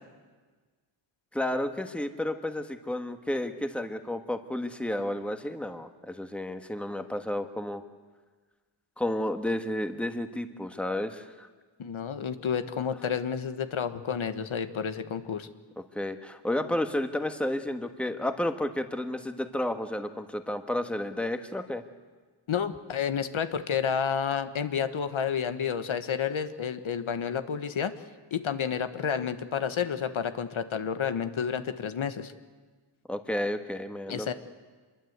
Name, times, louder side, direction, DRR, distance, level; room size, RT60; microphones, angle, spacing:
voice 1, 1.3-7.8 9.0-11.5 15.8-21.8 33.1-34.3, left 1 dB, ahead, 7 dB, 1.4 m, -31 dB
voice 2, 11.8-15.5 22.5-28.0 28.3-32.3 34.1-34.3, left 7 dB, 70° left, 10 dB, 1.4 m, -30 dB
26.0 x 22.5 x 8.1 m, 1.4 s
wide cardioid pair, 115°, 49 cm